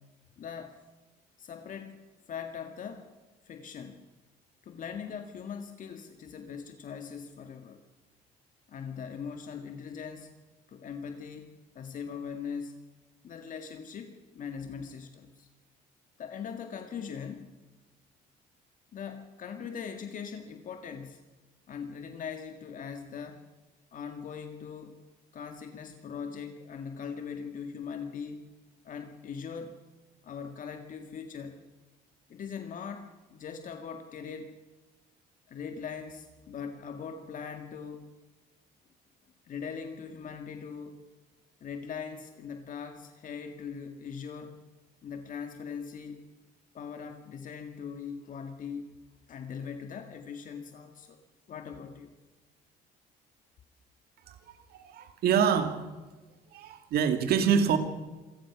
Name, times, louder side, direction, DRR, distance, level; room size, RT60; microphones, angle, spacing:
voice 1, 0.4-0.8 1.4-2.0 2.3-3.1 3.4-4.0 4.6-7.8 8.7-10.3 10.7-12.8 13.2-15.5 16.2-17.6 18.9-21.2 21.7-23.4 23.9-25.0 25.3-28.5 28.8-29.8 30.2-31.6 32.3-34.5 35.5-38.2 39.5-41.0 41.6-44.6 45.0-46.3 46.7-48.9 49.3-51.2 51.5-52.2, left 6 dB, 50° left, 6 dB, 1.9 m, -41 dB
voice 2, 54.3-55.8 56.5-57.8, right 7 dB, 65° right, 7 dB, 2.3 m, -26 dB
26.5 x 16.0 x 6.1 m, 1.2 s
cardioid pair, 110°, 17 cm